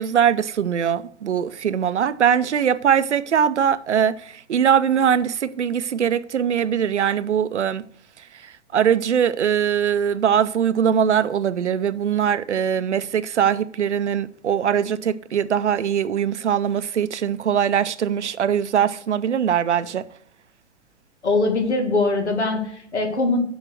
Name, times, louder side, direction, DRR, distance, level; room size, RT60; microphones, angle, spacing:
voice 1, 0.0-7.8 8.4-20.0, right 8 dB, 85° right, 0.6 m, -21 dB
voice 2, 21.2-23.4, left 3 dB, 80° left, 2.0 m, -22 dB
7.0 x 5.6 x 6.2 m
figure-of-eight pair, 110°, 34 cm